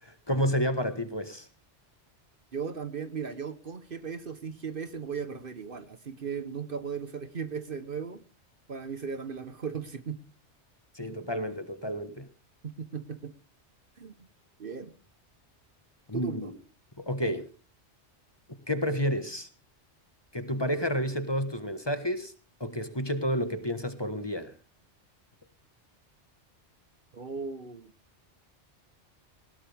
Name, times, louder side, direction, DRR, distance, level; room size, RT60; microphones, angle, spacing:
voice 1, 0.3-1.5 10.9-12.3 16.1-16.5 17.0-17.5 18.7-19.5 20.3-22.3 22.6-24.5, equal, 20° left, 10 dB, 1.4 m, -30 dB
voice 2, 2.5-8.2 8.7-10.2 12.6-13.3 14.0-14.1 14.6-14.9 16.1-16.5 27.1-27.9, right 6 dB, 50° right, 12 dB, 1.2 m, -37 dB
20.0 x 16.5 x 3.5 m, 0.35 s
omnidirectional pair, 1.2 m